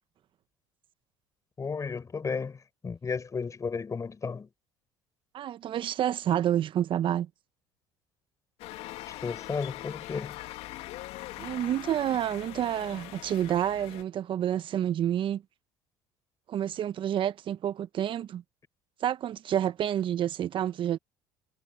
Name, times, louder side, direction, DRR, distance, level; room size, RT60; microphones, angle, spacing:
voice 1, 1.6-4.5 9.1-10.4, left 5 dB, 30° left, 6.5 m, -34 dB
voice 2, 5.3-7.3 11.4-15.4 16.5-18.4 19.0-21.0, right 10 dB, 50° right, 1.1 m, -29 dB
sound 1, 8.6-14.0, left 17 dB, 65° left, 1.8 m, -42 dB
hypercardioid pair, 70°, 11 cm